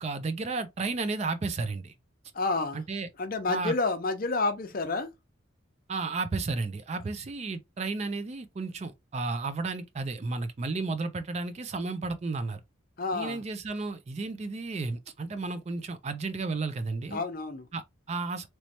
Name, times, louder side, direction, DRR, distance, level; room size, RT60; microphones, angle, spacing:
voice 1, 0.0-1.9 2.7-3.1 3.5-3.7 5.9-12.6 13.1-17.2 17.7-18.5, right 3 dB, 30° right, 0.3 m, -33 dB
voice 2, 2.3-2.8 3.2-5.1 13.0-13.4 17.1-17.6, left 3 dB, 45° left, 0.6 m, -29 dB
3.1 x 3.1 x 2.8 m
head